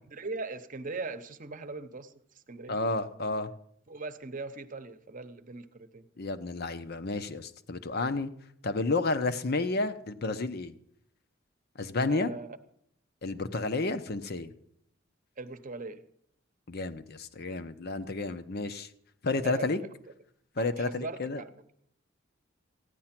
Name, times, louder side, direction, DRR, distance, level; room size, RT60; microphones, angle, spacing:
voice 1, 0.1-2.1 2.5-2.8 3.9-6.1 7.9-8.1 12.1-12.6 15.4-16.0 19.4-19.9 20.6-21.5, right 3 dB, 45° right, 10 dB, 0.9 m, -40 dB
voice 2, 2.7-3.5 6.2-8.3 8.6-10.7 11.8-12.3 13.2-14.5 16.7-18.9 19.2-19.8 20.6-21.4, left 3 dB, 55° left, 11 dB, 0.9 m, -31 dB
15.0 x 10.0 x 5.9 m, 0.72 s
head